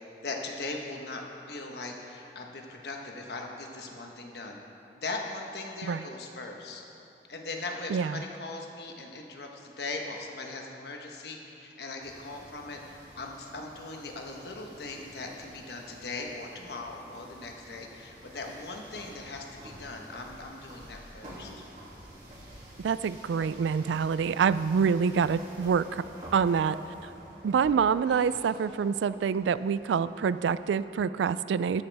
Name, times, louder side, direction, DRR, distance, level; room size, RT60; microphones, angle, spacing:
voice 1, 0.2-1.2 1.5-4.6 4.9-6.8 7.3-12.8 13.2-21.6 28.0-28.5, left 3 dB, 70° left, 1 dB, 1.2 m, -39 dB
voice 2, 7.9-8.2 22.8-26.0 26.3-26.8 27.0-27.1 27.4-31.8, right 6 dB, 90° right, 16 dB, 0.3 m, -26 dB
sound 1, 12.0-30.8, equal, 40° right, 2.5 m, -50 dB
13.5 x 10.5 x 3.5 m, 2.8 s
head